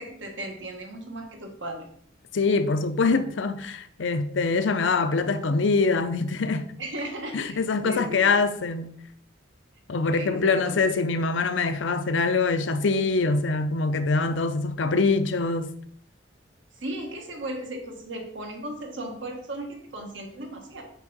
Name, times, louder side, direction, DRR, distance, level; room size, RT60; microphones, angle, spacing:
voice 1, 0.0-1.9 6.8-8.3 10.1-10.8 16.7-20.8, right 1 dB, 80° right, 1.6 m, -36 dB
voice 2, 2.3-6.7 7.3-9.0 9.9-15.7, left 4 dB, 75° left, 0.6 m, -24 dB
6.1 x 5.9 x 4.1 m
head